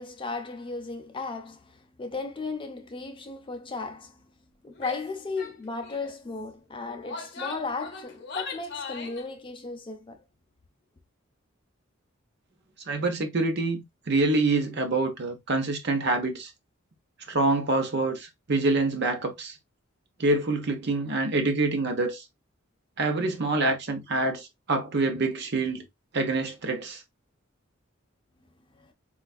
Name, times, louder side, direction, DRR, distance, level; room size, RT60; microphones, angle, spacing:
voice 1, 0.0-4.3 4.6-10.2 28.7-28.9, left 3 dB, 25° left, 0.4 m, -35 dB
Female speech woman speaking / Yell, 4.8-5.1 5.4-5.6 5.8-6.2 6.8-9.3, left 4 dB, 55° left, 0.7 m, -38 dB
voice 2, 12.9-16.5 17.3-19.5 20.2-22.2 23.0-25.8 26.1-27.0, right 2 dB, 55° right, 0.8 m, -26 dB
4.3 x 2.4 x 2.3 m
head